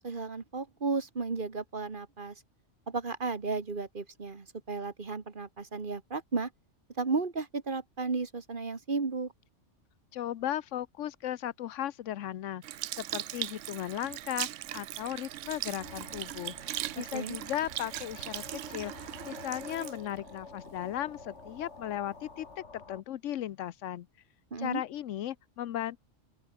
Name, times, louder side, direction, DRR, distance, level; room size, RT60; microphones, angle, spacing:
voice 1, 0.0-2.4 2.9-6.5 7.0-9.3 17.0-17.4 24.5-24.8, right 4 dB, 45° right, 1.7 m, -34 dB
voice 2, 10.1-12.6 13.0-24.1 24.6-26.0, left 12 dB, 90° left, 1.0 m, -36 dB
Sink (filling or washing) / Liquid, 12.6-21.2 21.8-22.0, right 14 dB, 90° right, 0.9 m, -39 dB
sound 1, 15.8-23.0, left 4 dB, 70° left, 2.8 m, -49 dB
open air
omnidirectional pair, 1.2 m